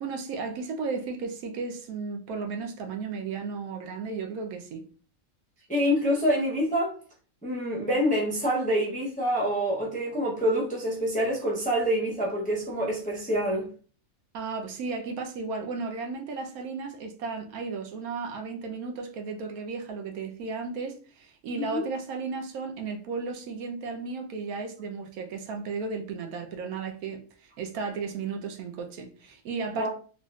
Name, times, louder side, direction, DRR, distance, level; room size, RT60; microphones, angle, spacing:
voice 1, 0.0-4.9 14.3-29.9, right 4 dB, 80° right, 1.1 m, -34 dB
voice 2, 5.7-7.0 7.4-13.7 21.6-21.8 29.7-29.9, equal, 10° left, 0.3 m, -26 dB
3.5 x 2.6 x 2.3 m
omnidirectional pair, 1.5 m